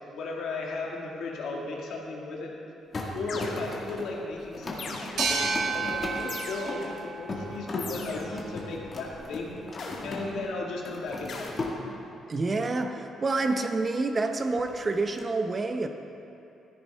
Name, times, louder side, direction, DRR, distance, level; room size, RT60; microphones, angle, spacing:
voice 1, 0.1-2.5 3.1-9.5 10.0-11.5, left 3 dB, 75° left, -1 dB, 1.8 m, -35 dB
sound 1, 2.9-10.5 10.8-11.8 14.4-15.2, left 2 dB, 40° left, 1.8 m, -37 dB
sound 2, 3.3-4.0 4.8-5.5 6.3-7.0 7.8-8.5 9.8-10.4 11.3-11.5, left 4 dB, 60° left, 1.4 m, -40 dB
sound 3, 5.2-8.5, right 4 dB, 80° right, 1.5 m, -32 dB
voice 2, 12.3-15.9, right 3 dB, 35° right, 6 dB, 0.8 m, -28 dB
13.5 x 10.0 x 3.5 m, 2.7 s
cardioid pair, 90°, 0 cm